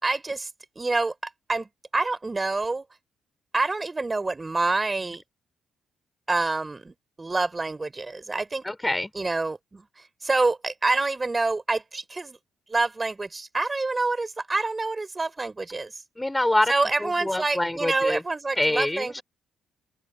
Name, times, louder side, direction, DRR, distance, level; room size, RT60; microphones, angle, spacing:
voice 1, 0.0-0.5 0.8-1.7 1.9-2.8 3.5-5.2 6.3-8.6 9.2-12.4 12.7-16.0 16.7-19.2, right 3 dB, 20° right, 3.8 m, -27 dB
voice 2, 8.6-9.1 16.2-16.7 17.0-18.2 18.6-19.2, left 1 dB, 10° left, 3.8 m, -25 dB
open air
cardioid pair, 90°, 0 cm